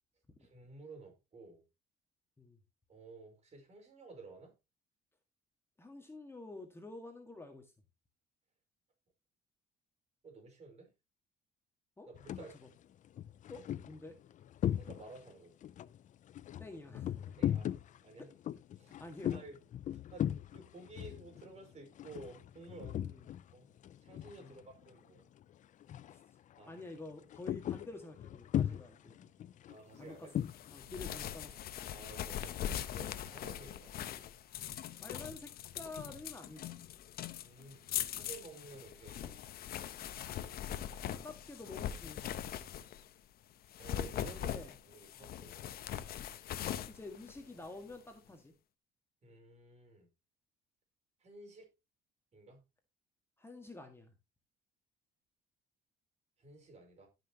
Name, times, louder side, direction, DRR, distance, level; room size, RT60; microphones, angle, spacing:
voice 1, 0.4-1.6 2.9-4.5 10.2-10.9 12.0-12.6 14.7-15.6 17.4-18.3 18.8-19.0 19.3-19.6 19.9-23.0 23.5-23.7 24.0-25.3 26.6-26.9 29.7-30.3 31.9-32.6 32.9-34.0 37.4-39.4 43.8-44.5 44.8-45.7 49.2-50.1 51.2-51.7 52.3-52.6 56.4-57.1, right 3 dB, 40° right, 5.1 m, -53 dB
voice 2, 5.8-7.7 12.0-12.1 12.6-12.7 13.5-14.2 16.6-17.4 19.0-19.4 23.0-23.2 24.4-24.6 26.1-26.2 26.7-29.1 30.0-30.3 30.7-31.6 35.0-36.8 41.1-42.3 44.3-44.7 46.9-48.5 53.4-54.1, left 2 dB, 15° left, 1.8 m, -49 dB
sound 1, 12.1-12.5 13.1-15.3 15.6-23.5 23.8-24.9 25.2-25.4 25.8-26.2 26.5-30.8, left 11 dB, 50° left, 0.5 m, -38 dB
sound 2, 30.5-43.1 43.6-48.0, left 10 dB, 65° left, 1.0 m, -41 dB
16.5 x 6.1 x 2.9 m
cardioid pair, 110°, 17 cm